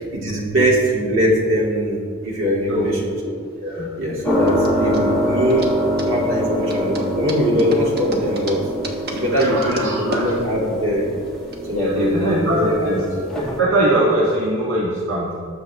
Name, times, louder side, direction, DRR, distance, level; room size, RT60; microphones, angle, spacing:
voice 1, 0.2-3.1 4.0-5.7 6.0-8.6 9.1-11.1 11.7-13.0, equal, 65° right, -4 dB, 2.7 m, -21 dB
sound 1, 2.7-11.6, right 1 dB, 45° right, 1.3 m, -35 dB
sound 2, 4.2-13.6, equal, 5° left, 1.7 m, -25 dB
voice 2, 9.3-10.4 11.7-15.3, right 1 dB, 80° right, -5 dB, 1.6 m, -22 dB
20.0 x 6.8 x 3.5 m, 2.2 s
head